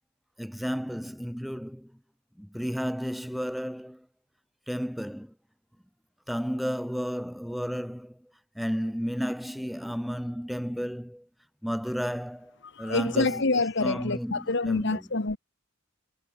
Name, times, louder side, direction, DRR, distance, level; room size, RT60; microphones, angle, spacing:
voice 1, 0.4-1.9 2.4-4.1 4.7-5.3 6.3-11.3 11.6-15.1, equal, ahead, 1.1 m, -33 dB
voice 2, 12.7-15.4, left 3 dB, 55° left, 1.3 m, -27 dB
head